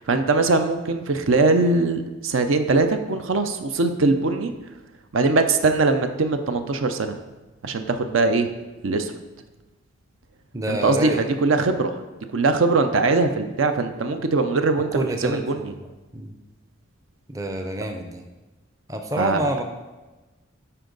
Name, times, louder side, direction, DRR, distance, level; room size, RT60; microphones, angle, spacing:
voice 1, 0.0-4.5 5.1-7.2 7.6-8.5 8.8-9.1 10.7-11.9 12.3-15.7 19.2-19.4, right 3 dB, 75° right, 7 dB, 0.6 m, -21 dB
voice 2, 10.5-11.2 14.9-15.7 16.1-16.4 17.3-18.2 18.9-19.6, right 1 dB, 15° right, 4 dB, 0.5 m, -27 dB
10.0 x 4.4 x 3.9 m, 1.2 s
head